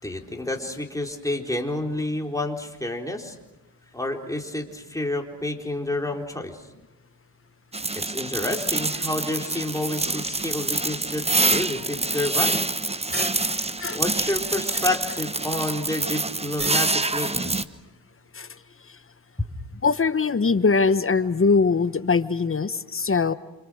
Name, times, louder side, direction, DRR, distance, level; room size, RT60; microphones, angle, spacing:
voice 1, 0.0-3.4 3.9-6.6 7.9-12.6 13.9-17.5 19.4-19.5, left 1 dB, 5° left, 1 dB, 4.0 m, -29 dB
sound 1, 7.7-17.6, right 2 dB, 15° right, 1.1 m, -26 dB
voice 2, 19.8-23.3, left 4 dB, 30° left, 13 dB, 1.1 m, -22 dB
28.5 x 27.0 x 6.3 m, 1.0 s
cardioid pair, 75°, 44 cm